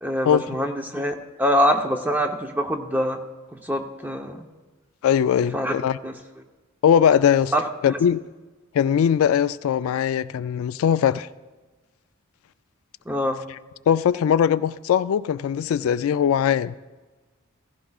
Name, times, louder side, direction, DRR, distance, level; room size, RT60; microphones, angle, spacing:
voice 1, 0.0-3.2 3.5-4.5 5.5-5.7 6.0-6.2 7.5-7.7 13.1-13.4, equal, 10° right, 0.7 m, -24 dB
voice 2, 5.0-6.0 6.8-7.5 7.8-8.2 8.7-11.3 13.9-16.7, left 8 dB, 80° left, 0.3 m, -20 dB
16.0 x 15.0 x 2.4 m
head